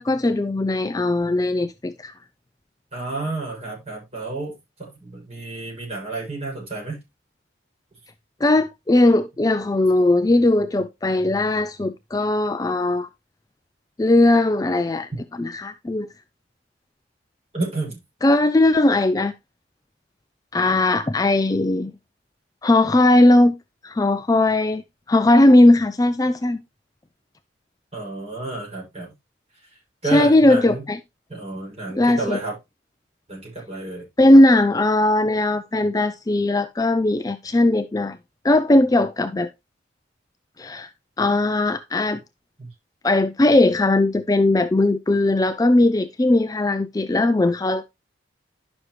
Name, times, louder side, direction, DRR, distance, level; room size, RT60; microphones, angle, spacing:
voice 1, 0.0-2.1 8.4-13.1 14.0-15.1 15.4-16.1 18.2-19.3 20.5-21.9 22.6-23.5 23.8-24.8 25.1-26.6 30.1-31.0 32.0-32.4 34.2-38.2 38.4-39.5 40.6-40.9 41.2-42.2 43.0-47.8, left 2 dB, 20° left, 0.4 m, -18 dB
voice 2, 2.9-4.5 4.8-7.0 17.5-18.0 27.9-29.1 29.6-30.9 31.3-32.6 33.3-34.1 42.6-42.7, right 2 dB, 35° right, 6.8 m, -30 dB
11.5 x 6.2 x 3.2 m
head